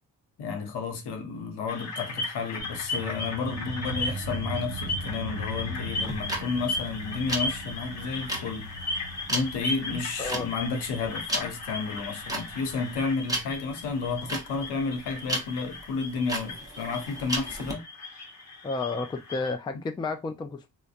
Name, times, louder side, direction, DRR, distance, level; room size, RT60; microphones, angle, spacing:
voice 1, 0.4-8.7 9.3-17.8, left 4 dB, 75° left, 0.8 m, -31 dB
sound 1, 1.7-19.5, left 2 dB, 40° left, 0.9 m, -37 dB
sound 2, 2.6-13.7, right 1 dB, 60° right, 0.6 m, -40 dB
sound 3, 6.0-17.7, right 1 dB, 10° right, 0.8 m, -34 dB
voice 2, 18.6-20.7, left 3 dB, 10° left, 0.3 m, -31 dB
2.7 x 2.1 x 2.4 m
supercardioid pair, 60°, 41 cm